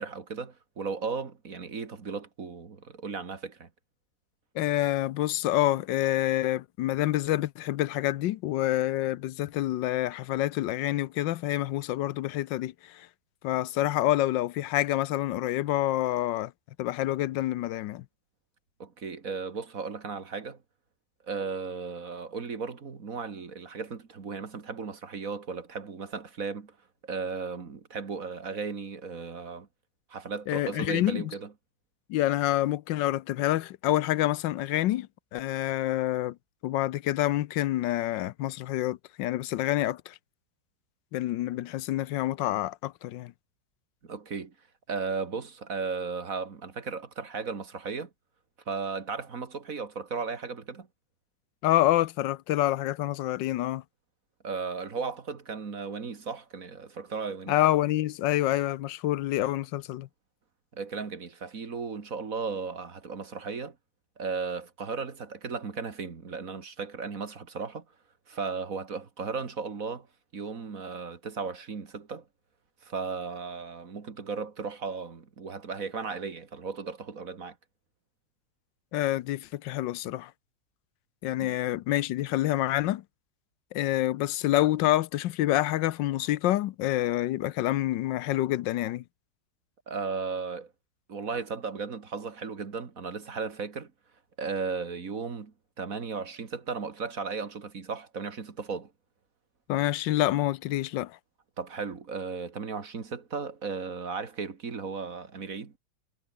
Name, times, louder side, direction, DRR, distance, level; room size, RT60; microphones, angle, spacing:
voice 1, 0.0-3.7 18.8-20.6 21.2-26.8 27.0-29.7 30.1-31.5 44.0-44.5 44.9-48.1 48.7-50.9 54.4-57.6 60.7-63.8 64.2-67.8 68.3-70.1 70.3-72.2 72.8-77.6 81.4-81.5 89.9-90.7 91.1-93.9 94.4-98.9 101.6-105.7, right 5 dB, 50° right, 2.3 m, -35 dB
voice 2, 4.5-13.1 13.4-16.5 16.8-18.0 30.5-31.3 32.1-36.4 36.6-40.1 41.1-43.3 51.6-53.8 57.5-60.1 78.9-80.3 81.2-83.0 83.7-89.0 99.7-101.2, left 14 dB, 80° left, 1.4 m, -27 dB
omnidirectional pair, 1.9 m